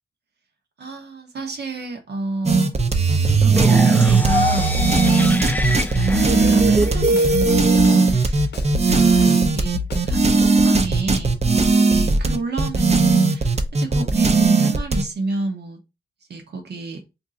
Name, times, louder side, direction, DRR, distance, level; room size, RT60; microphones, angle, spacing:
voice 1, 0.8-5.6 5.9-8.5 8.8-9.8 10.1-15.8 16.3-17.0, right 3 dB, 70° right, 1.0 m, -29 dB
sound 1, 2.5-15.0, right 4 dB, 35° right, 0.6 m, -17 dB
sound 2, 3.5-7.5, left 2 dB, 10° left, 0.3 m, -26 dB
Snare drum, 4.8-10.3, left 7 dB, 70° left, 0.7 m, -29 dB
2.6 x 2.3 x 4.0 m
supercardioid pair, 45°, 18 cm